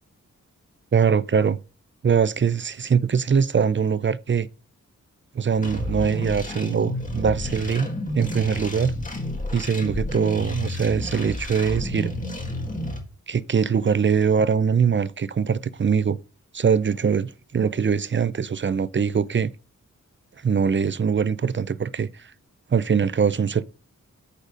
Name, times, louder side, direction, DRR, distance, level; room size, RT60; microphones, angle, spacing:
voice 1, 0.9-1.6 2.0-4.5 5.3-7.9 8.1-8.9 9.5-12.1 13.3-16.2 16.5-19.5 20.4-22.3 22.7-23.6, right 6 dB, 40° right, 0.5 m, -22 dB
sound 1, 5.6-13.0, left 1 dB, 25° left, 1.8 m, -31 dB
8.3 x 4.2 x 5.1 m
wide cardioid pair, 70°, 31 cm